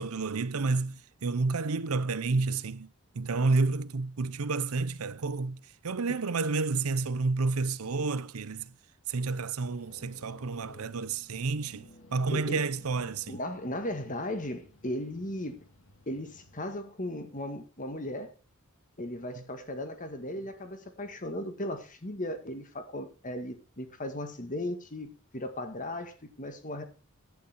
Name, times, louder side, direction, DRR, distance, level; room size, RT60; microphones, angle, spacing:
voice 1, 0.0-8.7 9.1-13.4, right 3 dB, 90° right, 0.7 m, -30 dB
sound 1, 9.6-16.7, left 1 dB, 65° left, 2.1 m, -56 dB
voice 2, 12.3-12.7 13.3-15.7 16.1-18.3 19.0-26.8, left 1 dB, 35° left, 1.8 m, -37 dB
11.5 x 9.7 x 4.5 m
head